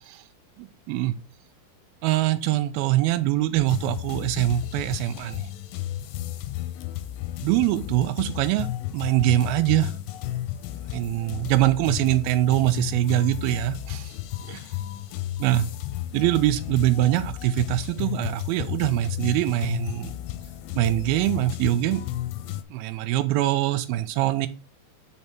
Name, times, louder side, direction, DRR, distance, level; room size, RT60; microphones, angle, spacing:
voice 1, 2.0-5.4 7.4-8.7 8.9-9.9 10.9-14.1 14.5-14.6 15.4-15.7 16.1-20.1 20.8-22.0 22.7-24.5, right 14 dB, 85° right, 11 dB, 2.5 m, -23 dB
sound 1, 3.7-22.6, left 13 dB, 85° left, 2.3 m, -33 dB
5.4 x 4.1 x 5.9 m, 0.36 s
omnidirectional pair, 4.3 m